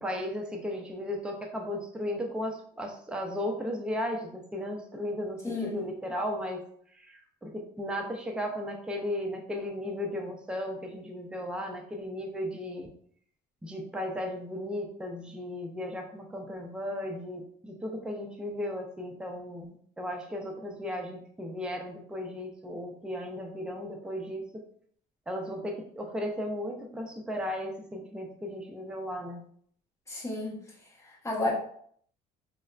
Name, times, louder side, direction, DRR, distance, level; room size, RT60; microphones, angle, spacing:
voice 1, 0.0-6.6 6.9-12.9 13.6-24.6 25.3-29.4, left 1 dB, 5° right, 2 dB, 0.4 m, -35 dB
voice 2, 5.4-5.8 30.1-30.6 31.0-31.5, left 2 dB, 15° left, -3 dB, 0.9 m, -32 dB
3.3 x 2.0 x 2.3 m, 0.62 s
cardioid pair, 110°, 17 cm